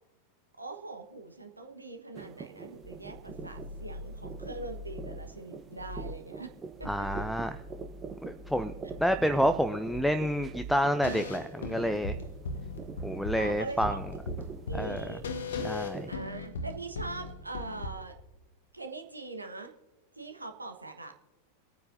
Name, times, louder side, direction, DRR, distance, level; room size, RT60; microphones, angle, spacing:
voice 1, 0.6-6.5 6.8-7.3 13.4-14.0 14.7-15.2 16.1-18.1 18.7-19.7 20.2-21.1, right 3 dB, 80° right, 5 dB, 1.4 m, -42 dB
sound 1, 2.1-16.1, right 5 dB, 25° right, 0.9 m, -45 dB
sound 2, 2.7-5.4 5.7-6.3 6.7-10.9, left 1 dB, 30° left, 1.6 m, -44 dB
voice 2, 6.9-7.6 8.3-8.7 9.0-12.2 13.0-14.0 14.7-15.1 15.5-16.1, equal, ahead, 10 dB, 0.5 m, -29 dB
sound 3, 11.0-17.9, left 3 dB, 65° left, 1.1 m, -37 dB
25.5 x 9.4 x 2.7 m, 1.1 s
figure-of-eight pair, 90°, 0 cm